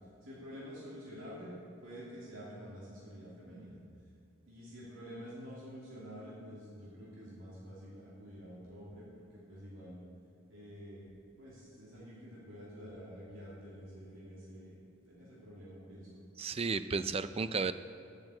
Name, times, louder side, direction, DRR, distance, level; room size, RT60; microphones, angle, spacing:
voice 1, 0.2-1.5 1.8-3.8 4.5-10.0 10.5-16.2, equal, 75° right, -7 dB, 2.7 m, -49 dB
voice 2, 16.4-17.7, right 4 dB, 30° right, 13 dB, 0.4 m, -33 dB
9.9 x 9.2 x 7.7 m, 2.5 s
head